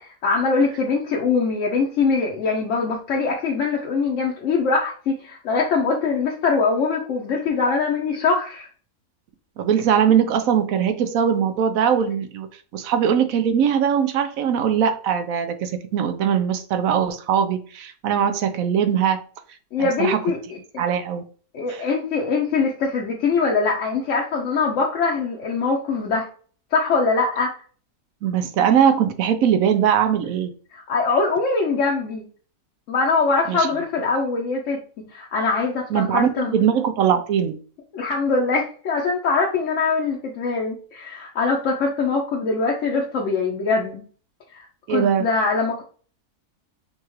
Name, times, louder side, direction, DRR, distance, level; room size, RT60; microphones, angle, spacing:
voice 1, 0.0-8.7 19.7-20.4 21.5-26.3 26.7-27.5 30.7-32.3 32.9-34.8 35.1-36.6 37.9-44.0 44.5-45.8, left 4 dB, 60° left, 1.0 m, -22 dB
voice 2, 9.6-12.5 12.7-19.2 19.8-20.2 20.8-21.2 21.7-21.8 28.2-30.5 33.5-33.7 35.9-37.6 44.9-45.3, right 8 dB, 70° right, 1.0 m, -21 dB
5.5 x 2.4 x 3.1 m
omnidirectional pair, 1.6 m